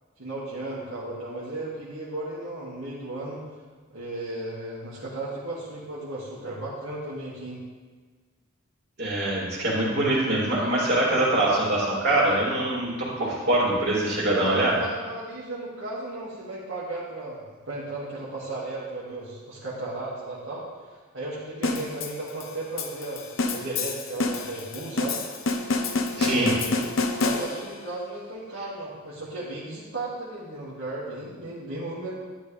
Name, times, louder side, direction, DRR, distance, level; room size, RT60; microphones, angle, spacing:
voice 1, 0.2-3.4 3.9-7.6 14.2-25.2 26.1-26.9 27.2-32.1, right 2 dB, 70° right, -8 dB, 2.2 m, -35 dB
voice 2, 9.0-12.9 13.2-14.8 26.2-26.5, right 1 dB, 55° right, -5 dB, 3.2 m, -23 dB
sound 1, 21.6-27.8, left 3 dB, 80° left, 1.0 m, -28 dB
11.5 x 9.9 x 3.5 m, 1.4 s
head